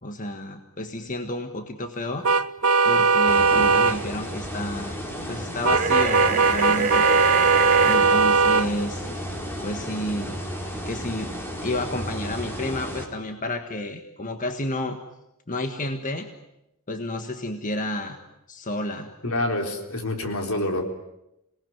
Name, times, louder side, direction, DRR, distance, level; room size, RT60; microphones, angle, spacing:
voice 1, 0.0-2.3 2.8-5.0 5.3-7.1 7.8-9.1 9.6-10.4 10.8-11.3 11.6-15.0 15.5-16.3 16.9-18.2 18.5-19.1, left 1 dB, 40° left, 6 dB, 1.5 m, -30 dB
sound 1, 2.2-4.0 5.6-8.7, right 4 dB, 90° right, 1.0 m, -19 dB
sound 2, 3.3-13.1, equal, 10° left, 3.7 m, -33 dB
voice 2, 3.5-3.9 19.2-20.8, left 1 dB, 70° left, 4 dB, 3.9 m, -27 dB
sound 3, 5.7-8.0, right 4 dB, 40° right, 4.0 m, -24 dB
27.0 x 19.0 x 9.4 m, 0.88 s
head